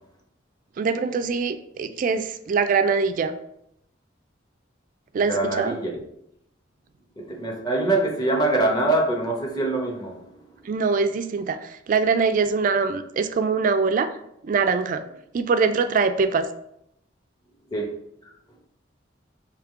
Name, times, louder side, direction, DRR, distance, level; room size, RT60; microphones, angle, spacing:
voice 1, 0.8-3.3 5.1-5.8 10.6-14.1 14.4-15.0 15.3-16.5, right 5 dB, 45° right, 10 dB, 0.3 m, -23 dB
voice 2, 5.2-5.9 7.2-10.3 17.7-17.9, right 2 dB, 20° left, 0 dB, 0.9 m, -24 dB
3.5 x 3.1 x 4.8 m, 0.77 s
head